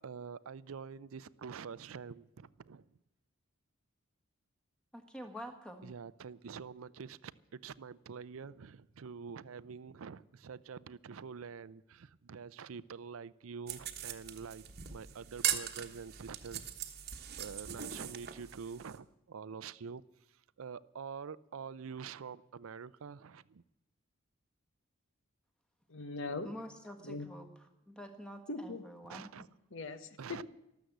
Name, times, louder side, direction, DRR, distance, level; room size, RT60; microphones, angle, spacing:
voice 1, 0.0-2.9 5.8-14.6 14.9-17.0 17.4-20.0 20.6-23.6 29.1-29.5 30.2-30.4, right 6 dB, 80° right, 17 dB, 0.5 m, -46 dB
voice 2, 4.9-5.9 26.4-27.5 27.9-29.4, equal, 5° left, 6 dB, 1.4 m, -47 dB
sound 1, 13.7-19.0, right 10 dB, 45° right, 1.1 m, -40 dB
voice 3, 25.9-26.5 27.0-27.3 28.5-28.8 29.7-30.4, left 3 dB, 65° left, 11 dB, 1.0 m, -40 dB
13.0 x 12.5 x 7.9 m, 0.88 s
head